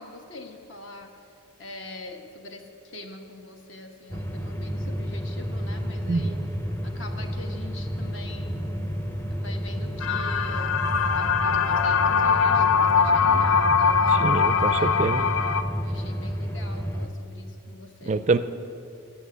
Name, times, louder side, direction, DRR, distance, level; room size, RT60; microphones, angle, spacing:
voice 1, 0.0-1.3 1.6-6.4 6.8-8.9 9.3-10.7 11.0-14.8 15.8-18.2, left 2 dB, 60° left, 4 dB, 1.3 m, -43 dB
sound 1, 4.1-17.1, equal, 10° left, 0.6 m, -31 dB
sound 2, 10.0-15.6, left 6 dB, 85° left, 0.6 m, -22 dB
voice 2, 14.1-15.3 18.1-18.4, right 3 dB, 35° right, 12 dB, 0.4 m, -25 dB
14.5 x 6.0 x 9.4 m, 2.6 s
head